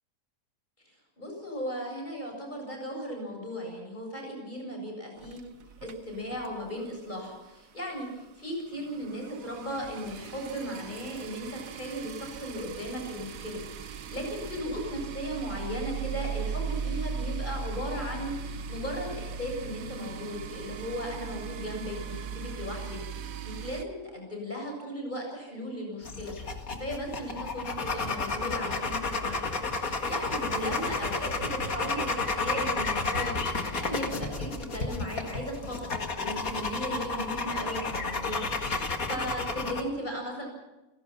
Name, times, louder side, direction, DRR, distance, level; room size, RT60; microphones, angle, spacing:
voice 1, 1.2-5.4 5.8-29.5 29.7-38.4 39.1-40.5, equal, 30° left, 1 dB, 7.7 m, -36 dB
sound 1, 5.2-7.0 7.2-7.5 7.8-7.9 8.0-23.8, right 6 dB, 70° right, 1.3 m, -38 dB
sound 2, 26.0-39.8, left 3 dB, 70° left, 2.4 m, -32 dB
29.5 x 17.5 x 5.8 m, 1.1 s
omnidirectional pair, 1.5 m